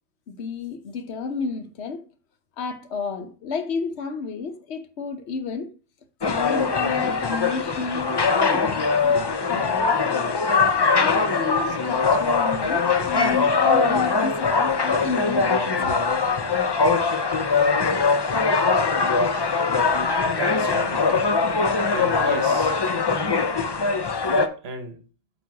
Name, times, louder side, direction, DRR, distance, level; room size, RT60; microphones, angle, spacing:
voice 1, 0.3-2.0 2.6-5.7 6.3-10.5 11.0-15.9, left 5 dB, 65° left, 1.1 m, -31 dB
sound 1, 6.2-24.5, left 4 dB, 45° left, 0.3 m, -22 dB
voice 2, 20.2-21.2 21.9-22.8 24.6-25.0, right 5 dB, 60° right, 1.3 m, -34 dB
8.3 x 3.1 x 4.6 m
omnidirectional pair, 1.2 m